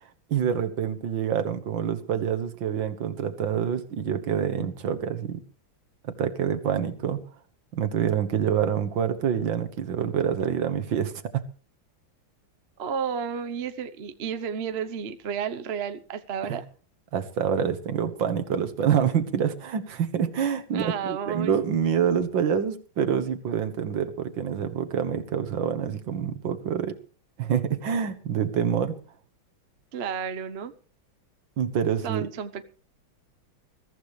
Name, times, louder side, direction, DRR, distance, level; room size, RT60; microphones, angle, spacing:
voice 1, 0.3-5.4 6.0-7.2 7.7-11.4 17.1-27.0 27.4-29.0 31.6-32.3, right 8 dB, 70° right, 9 dB, 2.0 m, -26 dB
voice 2, 12.8-16.6 20.7-21.6 29.9-30.7 32.0-32.6, right 7 dB, 45° right, 10 dB, 0.8 m, -32 dB
22.0 x 14.5 x 3.3 m, 0.38 s
omnidirectional pair, 2.2 m